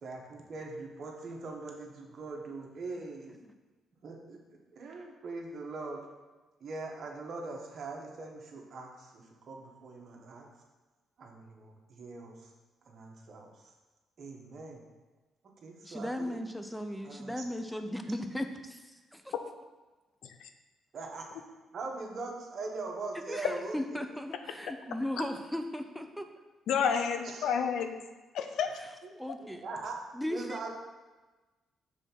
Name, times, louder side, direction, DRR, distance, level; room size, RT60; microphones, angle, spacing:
voice 1, 0.0-3.4 4.0-6.0 6.6-10.5 11.2-12.5 12.8-13.7 14.2-14.8 15.6-16.5 17.0-17.4 20.9-21.4 21.7-23.7 27.2-27.6 29.0-29.1 29.4-30.0 30.3-30.7, right 3 dB, 55° right, 0 dB, 1.2 m, -42 dB
voice 2, 15.8-19.3 23.3-26.3 28.8-28.9 29.2-29.7 30.1-30.7, left 1 dB, ahead, 6 dB, 0.6 m, -37 dB
voice 3, 26.7-28.0 28.3-28.7, left 7 dB, 80° left, 7 dB, 0.6 m, -29 dB
6.2 x 3.5 x 5.8 m, 1.2 s
cardioid pair, 90°, 0 cm